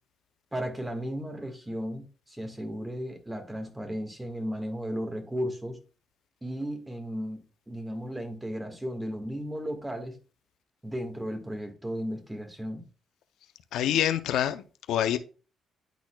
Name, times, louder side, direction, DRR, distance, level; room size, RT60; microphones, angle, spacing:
voice 1, 0.5-5.8 6.4-7.4 7.7-10.2 10.8-12.8, equal, 10° right, 1.5 m, -35 dB
voice 2, 13.7-15.2, left 11 dB, 80° left, 0.5 m, -26 dB
10.5 x 4.1 x 2.2 m
cardioid pair, 90°, 0 cm